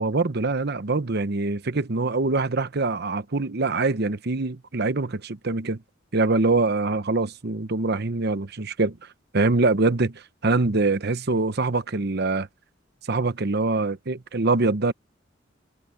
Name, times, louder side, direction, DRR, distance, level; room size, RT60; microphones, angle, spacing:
voice 1, 0.0-5.8 6.1-9.0 9.3-12.5 13.1-14.9, right 3 dB, 60° right, 1.0 m, -24 dB
head